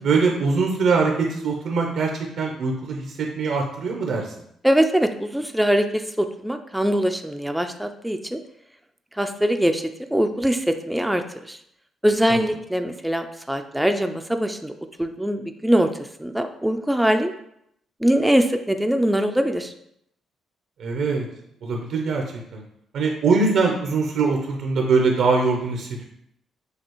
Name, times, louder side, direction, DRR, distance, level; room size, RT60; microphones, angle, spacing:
voice 1, 0.0-2.1 2.4-4.3 20.8-21.2 21.6-22.2 22.5-22.6 22.9-26.0, right 4 dB, 75° right, 1 dB, 0.6 m, -22 dB
voice 2, 4.6-8.4 9.2-9.8 10.1-11.6 12.0-14.7 15.0-17.3 18.0-19.7, equal, 5° right, 6 dB, 0.3 m, -22 dB
6.5 x 2.4 x 3.0 m, 0.74 s
cardioid pair, 90°, 0 cm